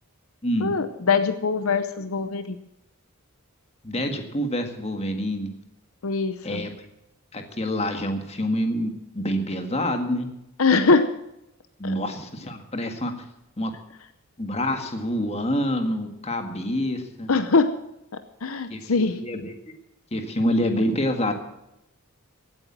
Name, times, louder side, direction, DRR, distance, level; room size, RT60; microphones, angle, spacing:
voice 1, 0.6-2.6 6.0-6.6 10.6-11.1 11.8-12.0 17.3-17.7 18.4-19.2, left 4 dB, 70° left, 10 dB, 0.8 m, -22 dB
voice 2, 3.8-5.5 6.4-6.8 7.3-10.3 11.8-13.1 13.6-13.7 14.4-17.3 18.7-18.8 19.1-19.5 20.1-21.3, equal, 30° left, 5 dB, 1.8 m, -27 dB
16.0 x 8.9 x 7.4 m, 0.86 s
head